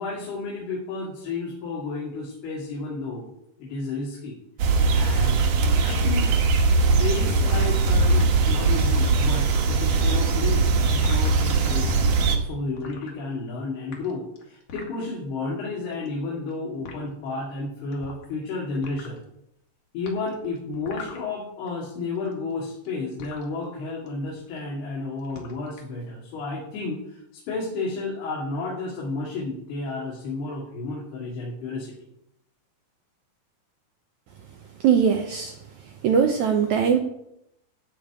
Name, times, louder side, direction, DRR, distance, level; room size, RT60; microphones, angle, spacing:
voice 1, 0.0-3.3 3.6-4.4 4.7-5.4 5.8-6.4 6.7-12.0 12.4-19.2 19.9-32.0, left 3 dB, 75° left, -4 dB, 4.4 m, -32 dB
sound 1, 4.6-12.4, right 3 dB, 60° right, 2.7 m, -20 dB
sound 2, 7.5-8.2 8.8-9.7 9.9-11.4 12.1-12.3 12.8-13.5 13.8-15.1 15.9-16.5 16.9-17.0 17.9-18.5 18.7-19.2 20.1-21.7 22.0-23.5 24.1-24.3 24.6-24.9 25.2-25.9, left 4 dB, 60° left, 3.4 m, -42 dB
voice 2, 34.8-35.5 36.0-37.0, right 7 dB, 80° right, 4 dB, 1.7 m, -20 dB
14.5 x 5.2 x 8.7 m, 0.79 s
omnidirectional pair, 4.6 m